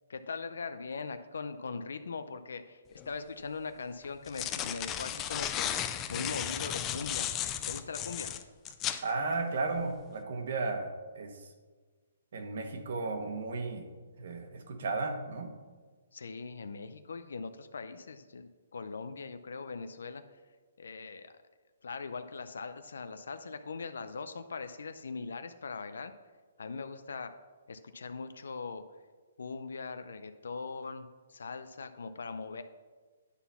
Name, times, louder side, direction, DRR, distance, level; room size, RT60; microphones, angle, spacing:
voice 1, 0.1-7.3 7.7-8.3 16.1-20.4 20.8-21.4 21.8-26.1 26.6-27.4 27.7-28.8 29.4-32.6, left 4 dB, 85° left, 10 dB, 0.5 m, -41 dB
sound 1, 3.0-3.1 4.0-9.0, left 10 dB, 15° left, 0.3 m, -35 dB
voice 2, 9.0-11.5 12.3-13.9 14.2-15.5, right 3 dB, 60° right, 5 dB, 1.2 m, -34 dB
9.7 x 4.1 x 5.6 m, 1.4 s
hypercardioid pair, 165°, 0 cm